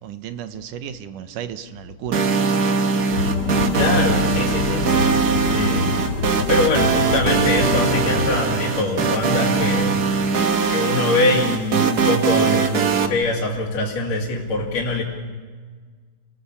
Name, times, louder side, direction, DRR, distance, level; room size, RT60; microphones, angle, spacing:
voice 1, 0.0-2.3, right 9 dB, 85° right, 11 dB, 2.6 m, -33 dB
sound 1, 2.1-13.1, right 5 dB, 65° right, 0.9 m, -21 dB
sound 2, 3.1-8.4, left 4 dB, 40° left, 1.7 m, -25 dB
voice 2, 3.7-4.9 5.5-6.0 6.5-10.1 10.7-15.0, left 2 dB, 60° left, -4 dB, 3.6 m, -23 dB
30.0 x 18.5 x 7.1 m, 1.5 s
omnidirectional pair, 3.6 m